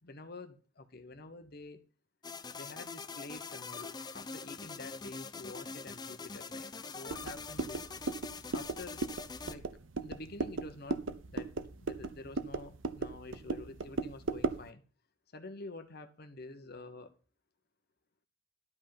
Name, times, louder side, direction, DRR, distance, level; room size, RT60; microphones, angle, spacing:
voice 1, 0.0-1.8 2.5-7.9 8.5-9.0 9.4-9.7 10.0-11.5 11.8-14.8 15.3-17.1, left 2 dB, 55° left, 1.1 m, -48 dB
sound 1, 2.2-9.5, left 4 dB, 20° left, 0.6 m, -44 dB
sound 2, 7.1-14.7, right 3 dB, 85° right, 0.8 m, -37 dB
12.0 x 5.5 x 5.8 m
head